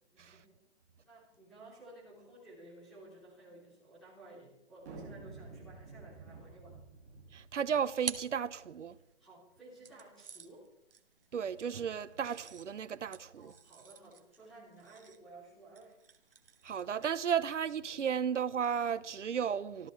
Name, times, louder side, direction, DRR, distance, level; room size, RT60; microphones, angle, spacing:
voice 1, 0.1-0.6 1.0-6.8 9.2-10.6 13.4-15.9, right 2 dB, ahead, 3.4 m, -55 dB
sound 1, 4.8-8.4, right 3 dB, 15° right, 2.3 m, -50 dB
voice 2, 7.3-9.0 11.3-13.5 16.6-19.9, right 7 dB, 85° right, 1.0 m, -34 dB
sound 2, 7.5-9.1 9.8-17.4, right 6 dB, 50° right, 1.4 m, -49 dB
26.5 x 13.5 x 3.3 m
hypercardioid pair, 180°, 35 cm